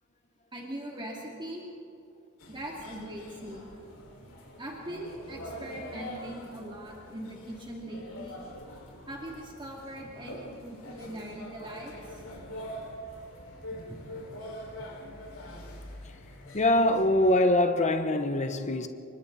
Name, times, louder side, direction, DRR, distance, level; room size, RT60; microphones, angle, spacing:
voice 1, 0.5-1.6 2.5-3.6 4.6-8.4 9.1-12.2 13.7-14.0 14.3-14.4, right 1 dB, 25° right, 2.8 m, -41 dB
sound 1, 2.4-17.3, equal, 90° left, 5.4 m, -44 dB
voice 2, 16.5-18.9, left 1 dB, 35° left, 1.1 m, -23 dB
28.0 x 24.5 x 4.2 m
head